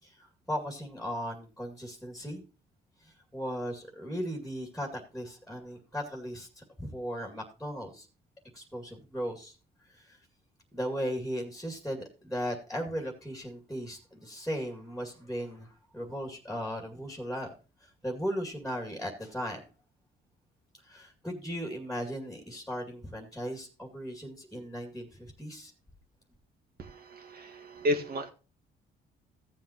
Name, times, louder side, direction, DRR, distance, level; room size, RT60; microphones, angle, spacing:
voice 1, 0.0-2.4 3.0-8.1 8.5-9.6 9.8-10.2 10.7-17.5 17.8-19.6 20.8-25.7, equal, ahead, 2 dB, 2.2 m, -37 dB
voice 2, 26.8-28.3, left 1 dB, 50° right, 5 dB, 1.8 m, -32 dB
15.5 x 7.5 x 2.9 m, 0.33 s
cardioid pair, 90°, 20 cm